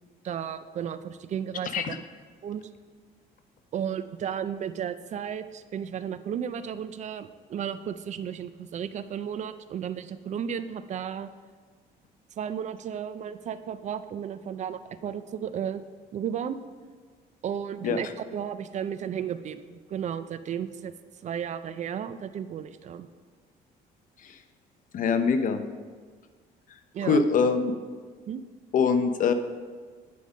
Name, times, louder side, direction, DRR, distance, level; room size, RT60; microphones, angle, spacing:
voice 1, 0.2-2.0 2.4-2.6 3.7-11.3 12.4-15.8 16.1-16.6 17.4-20.9 21.2-23.1 26.9-27.2 28.3-28.4, right 8 dB, 45° right, 12 dB, 0.4 m, -34 dB
voice 2, 24.9-25.6 27.0-27.7 28.7-29.3, left 5 dB, 50° left, 9 dB, 0.7 m, -23 dB
9.3 x 5.1 x 5.1 m, 1.5 s
cardioid pair, 110°, 17 cm